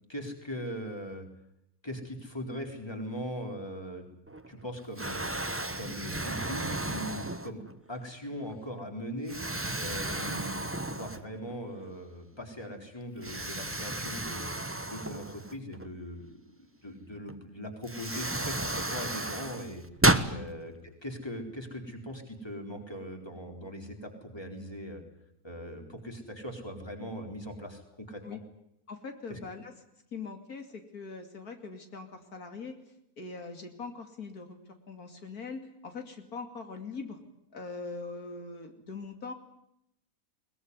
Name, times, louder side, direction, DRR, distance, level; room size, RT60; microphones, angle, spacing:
voice 1, 0.1-1.3 1.8-4.1 4.5-5.3 5.7-7.6 7.9-9.4 9.8-14.5 14.9-16.3 16.6-19.8 20.3-25.0 25.4-28.4 29.3-29.4, equal, 15° left, 3 dB, 4.2 m, -40 dB
Explosion, 4.3-4.6 5.0-7.8 8.4-8.6 9.3-11.5 11.9-12.0 13.2-15.9 17.3-17.4 17.8-20.3, right 2 dB, 10° right, 1.1 m, -32 dB
voice 2, 28.9-29.7 30.1-32.8 33.2-34.6 34.9-37.2 37.5-39.3, left 4 dB, 80° left, 6 dB, 3.1 m, -42 dB
22.0 x 20.5 x 9.7 m, 0.79 s
omnidirectional pair, 1.6 m